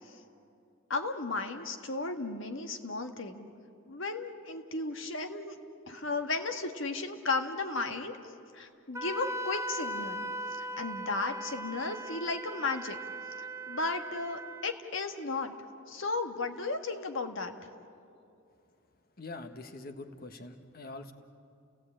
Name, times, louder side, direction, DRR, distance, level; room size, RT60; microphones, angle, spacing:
voice 1, 0.9-3.5 3.9-5.6 5.9-8.2 8.5-13.0 13.7-15.5 15.9-17.5, left 3 dB, 65° left, 6 dB, 1.6 m, -34 dB
Wind instrument woodwind instrument, 9.0-14.7, right 1 dB, 15° right, 0.5 m, -39 dB
voice 2, 19.2-21.1, left 2 dB, 45° left, 6 dB, 1.5 m, -44 dB
30.0 x 18.0 x 8.8 m, 2.5 s
head